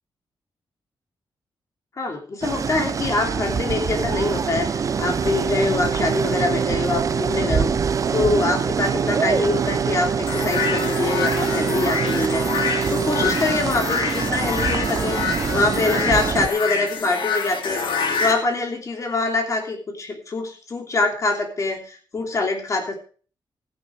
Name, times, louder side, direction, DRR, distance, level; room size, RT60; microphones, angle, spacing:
voice 1, 2.0-7.7 8.1-12.5 12.9-15.2 15.5-17.8 18.2-23.0, left 3 dB, 40° left, 3 dB, 3.1 m, -24 dB
sound 1, 2.4-16.5, right 6 dB, 40° right, 0.6 m, -25 dB
sound 2, 3.9-13.3, right 6 dB, 60° right, 2.3 m, -28 dB
sound 3, 10.3-18.3, left 5 dB, 75° left, 2.8 m, -26 dB
14.5 x 9.7 x 4.7 m, 0.40 s
wide cardioid pair, 165°, 8 cm